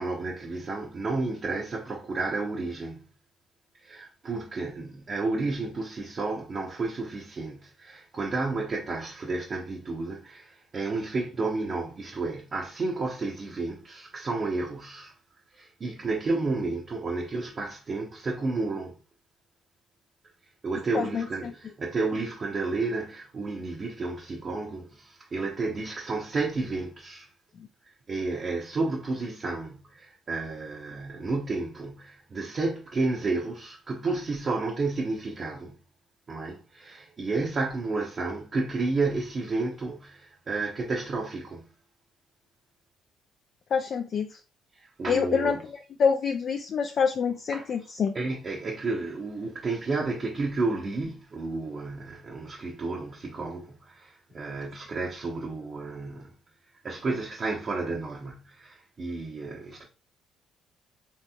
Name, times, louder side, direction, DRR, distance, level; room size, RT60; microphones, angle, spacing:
voice 1, 0.0-3.1 3.8-15.2 15.5-19.0 20.6-27.3 28.1-35.7 36.3-41.7 44.7-45.6 47.5-47.7 48.1-56.4 56.8-59.8, right 3 dB, 45° right, 0.7 m, -31 dB
voice 2, 20.9-21.2 43.7-44.4 45.1-45.6 46.0-48.2, left 6 dB, 55° left, 0.3 m, -26 dB
3.3 x 2.8 x 2.3 m
hypercardioid pair, 50°, 0 cm